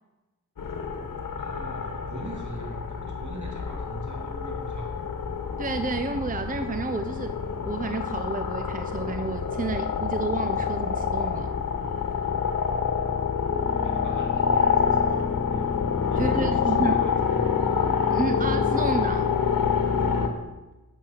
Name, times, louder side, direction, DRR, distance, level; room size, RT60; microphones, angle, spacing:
sound 1, 0.6-20.3, left 6 dB, 90° left, 1.1 m, -27 dB
voice 1, 1.4-5.1 13.8-15.0 15.4-15.7 16.1-17.5, right 1 dB, 65° right, 0 dB, 2.6 m, -40 dB
voice 2, 5.6-7.4 7.6-11.5 16.2-16.9 18.1-19.3, right 4 dB, 25° right, 9 dB, 0.6 m, -30 dB
8.7 x 7.1 x 5.7 m, 1.1 s
cardioid pair, 55°, 32 cm